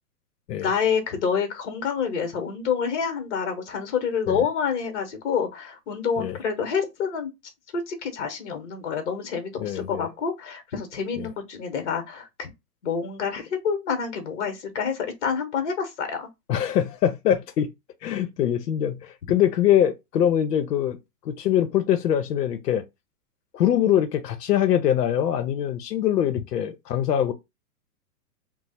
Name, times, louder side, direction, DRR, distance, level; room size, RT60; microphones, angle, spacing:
voice 1, 0.6-7.3 7.7-12.5 12.8-16.3, left 6 dB, 50° left, 1.1 m, -28 dB
voice 2, 9.6-10.1 11.2-11.3 16.5-17.7 18.0-21.0 21.2-22.8 23.5-27.3, left 10 dB, 90° left, 0.7 m, -23 dB
3.0 x 2.0 x 4.1 m
hypercardioid pair, 175°, 47 cm